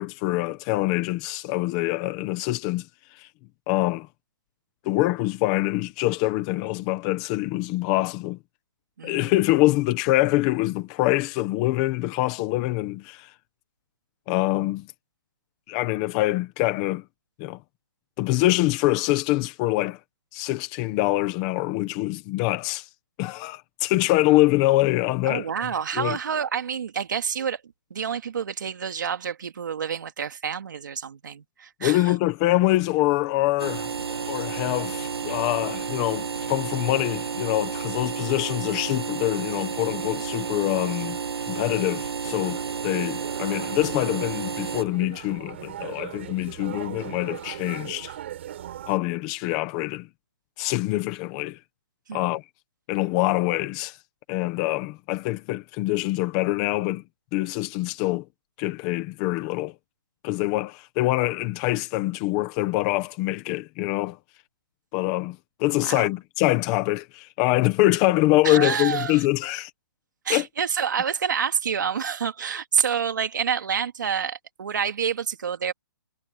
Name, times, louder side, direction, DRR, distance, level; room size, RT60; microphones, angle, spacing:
voice 1, 0.0-2.9 3.1-3.3 3.7-4.1 4.8-8.4 9.0-13.3 14.3-14.9 15.7-17.0 17.4-17.6 18.2-20.0 20.3-22.9 23.2-25.5 25.9-26.2 31.8-41.2 41.5-48.1 48.9-50.1 50.6-51.6 52.1-52.4 52.9-54.0 54.3-57.0 57.3-58.2 58.6-59.7 60.2-64.2 64.9-69.7 70.3-70.5, left 18 dB, 15° left, 1.2 m, -24 dB
voice 2, 9.0-9.3 25.3-27.6 27.9-32.1 52.1-52.3 65.8-66.1 68.4-69.2 70.2-75.7, right 7 dB, 50° right, 2.4 m, -28 dB
sound 1, 33.6-44.8, right 6 dB, 75° right, 1.7 m, -31 dB
sound 2, 42.2-49.0, right 11 dB, 30° right, 4.3 m, -39 dB
hypercardioid pair, 180°, 13 cm